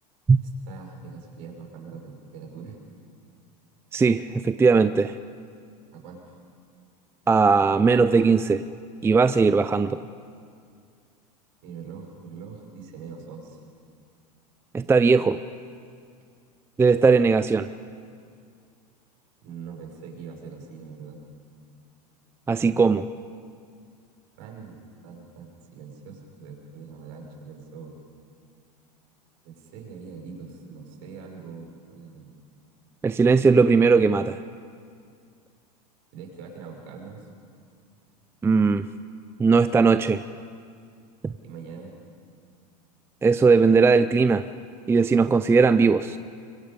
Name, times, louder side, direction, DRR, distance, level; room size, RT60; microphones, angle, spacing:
voice 1, 0.7-2.8 5.9-6.4 11.6-13.6 19.4-21.2 24.4-24.7 25.0-28.0 29.4-32.3 36.1-37.3 41.4-42.0, right 5 dB, 60° right, 0 dB, 5.6 m, -42 dB
voice 2, 3.9-5.1 7.3-8.6 9.0-10.0 14.7-15.4 16.8-17.7 22.5-23.1 33.0-34.4 38.4-38.8 39.4-40.2 43.2-44.4 44.9-46.2, right 4 dB, 10° right, 12 dB, 0.5 m, -19 dB
25.0 x 23.5 x 5.3 m, 2.2 s
hypercardioid pair, 100°, 21 cm